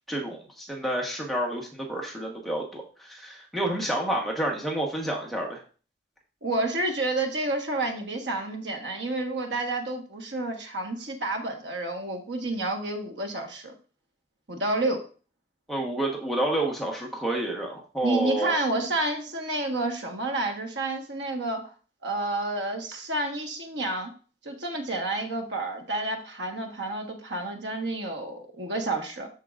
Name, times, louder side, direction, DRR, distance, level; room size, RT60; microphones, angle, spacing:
voice 1, 0.1-5.6 15.7-18.5, right 1 dB, ahead, -2 dB, 1.1 m, -29 dB
voice 2, 6.4-13.7 14.5-15.0 18.0-21.7 22.0-24.1 24.4-29.3, right 2 dB, 80° right, 3 dB, 1.4 m, -30 dB
12.5 x 4.6 x 2.5 m, 0.37 s
head